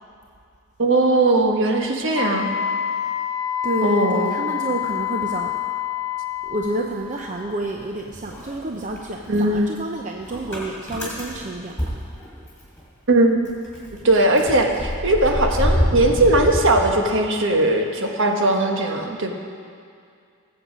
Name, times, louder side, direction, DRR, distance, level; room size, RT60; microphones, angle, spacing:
voice 1, 0.8-2.5 3.8-4.3 9.3-9.7 13.1-13.5 14.0-19.3, right 2 dB, 60° right, 3 dB, 1.2 m, -19 dB
Wind instrument woodwind instrument, 2.1-6.9, left 11 dB, 80° left, 0.9 m, -27 dB
voice 2, 3.6-5.5 6.5-11.9, right 1 dB, 35° right, 2 dB, 0.6 m, -29 dB
Motor vehicle (road) / Engine starting, 6.6-7.8 8.1-12.8 13.1-13.2 13.4-17.6, equal, 5° left, 3.5 m, -27 dB
19.0 x 7.8 x 5.1 m, 2.4 s
head